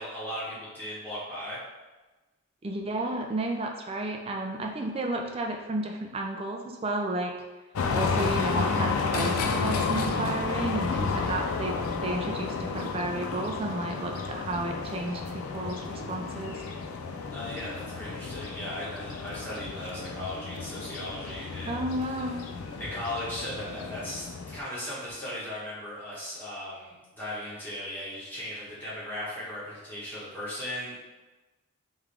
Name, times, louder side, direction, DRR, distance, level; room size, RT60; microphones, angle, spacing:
voice 1, 0.0-1.6 17.3-22.3 22.8-31.0, left 1 dB, 10° left, -9 dB, 1.3 m, -37 dB
voice 2, 2.6-7.3 7.9-16.6 21.7-22.4, right 2 dB, 25° right, 2 dB, 0.4 m, -32 dB
sound 1, 7.8-24.6, left 4 dB, 85° left, 0.4 m, -32 dB
3.6 x 3.2 x 3.4 m, 1.2 s
head